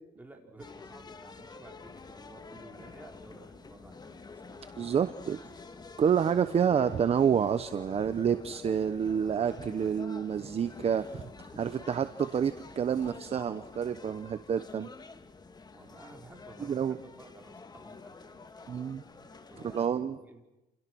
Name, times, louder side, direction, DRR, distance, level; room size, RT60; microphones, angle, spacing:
voice 1, 0.2-4.2 4.5-5.1 5.5-5.8 15.7-18.7 19.5-20.4, right 2 dB, 10° right, 1 dB, 4.9 m, -54 dB
sound 1, 0.6-19.9, left 4 dB, 25° left, 1.6 m, -48 dB
voice 2, 4.8-5.4 6.0-11.2 11.5-14.9 16.6-17.0 18.7-19.0 19.6-20.2, right 7 dB, 35° right, 11 dB, 0.9 m, -28 dB
29.5 x 28.0 x 6.2 m, 1.0 s
cardioid pair, 110°, 17 cm